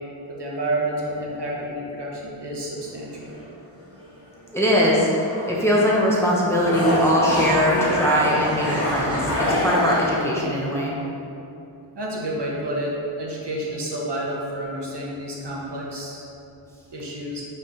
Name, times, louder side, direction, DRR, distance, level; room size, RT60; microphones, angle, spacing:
voice 1, 0.3-3.3 11.9-16.2 16.9-17.4, right 1 dB, 55° right, -4 dB, 1.2 m, -29 dB
sound 1, 2.8-3.4 4.0-4.1 5.1-6.0 6.3-10.3, left 1 dB, 30° left, 1.3 m, -25 dB
voice 2, 4.5-5.1 5.4-9.4 9.6-10.9, equal, 5° left, -5 dB, 0.9 m, -21 dB
5.4 x 3.3 x 5.7 m, 2.7 s
wide cardioid pair, 120°, 48 cm